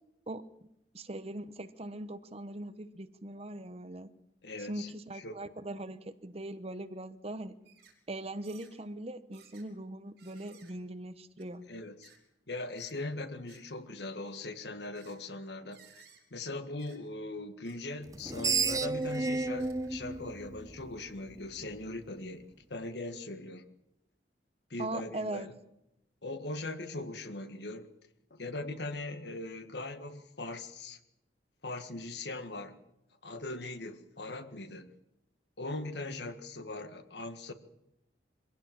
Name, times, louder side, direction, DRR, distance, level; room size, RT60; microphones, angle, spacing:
voice 1, 0.9-4.1 4.6-7.5 8.1-11.6 24.8-25.5, right 1 dB, 35° right, 11 dB, 1.0 m, -40 dB
voice 2, 4.4-4.9 5.2-5.3 11.6-12.1 12.5-15.8 16.3-23.6 24.7-25.5 26.2-27.9 28.3-31.0 31.6-32.8 33.2-34.9 35.6-37.5, left 2 dB, 70° left, 9 dB, 1.7 m, -40 dB
sound 1, 7.6-8.0 8.4-8.7 9.3-9.7 10.2-10.7 11.4-11.5 12.0-12.2 12.8-12.9 13.5-13.6 14.9-15.2 15.7-16.2 16.8-17.0 17.6-17.8 18.3-18.5 19.0-19.2 19.6-20.0 20.5-20.6, right 7 dB, 75° right, 5.3 m, -59 dB
Screech, 18.1-21.3, right 4 dB, 20° right, 0.7 m, -32 dB
23.5 x 16.5 x 7.6 m, 0.85 s
head